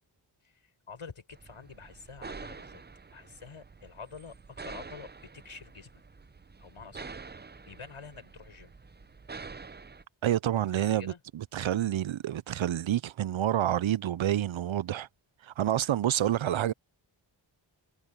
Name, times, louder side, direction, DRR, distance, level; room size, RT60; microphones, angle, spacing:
voice 1, 0.4-2.8 3.1-5.9 6.6-8.7 10.8-11.2, left 5 dB, 85° left, 7.1 m, -48 dB
sound 1, 1.3-10.0, right 4 dB, 20° right, 0.6 m, -47 dB
voice 2, 10.2-15.1 15.4-16.7, right 12 dB, 70° right, 0.6 m, -28 dB
cardioid pair, 50°, 49 cm